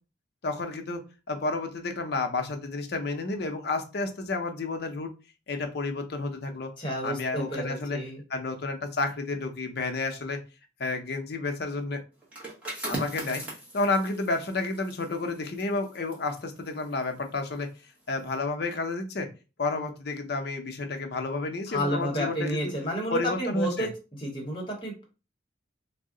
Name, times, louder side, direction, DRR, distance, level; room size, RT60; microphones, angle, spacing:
voice 1, 0.4-1.0 1.3-5.1 5.5-6.7 7.0-8.0 8.3-10.4 10.8-12.0 12.9-13.4 13.7-17.7 18.1-19.3 19.6-22.7 23.1-23.9, left 3 dB, 55° left, 5 dB, 0.5 m, -31 dB
voice 2, 6.8-8.2 21.7-25.0, equal, 25° left, -1 dB, 0.9 m, -31 dB
sound 1, 12.2-17.7 18.1-18.3, right 1 dB, 5° right, 0.8 m, -40 dB
2.7 x 2.0 x 3.6 m, 0.31 s
head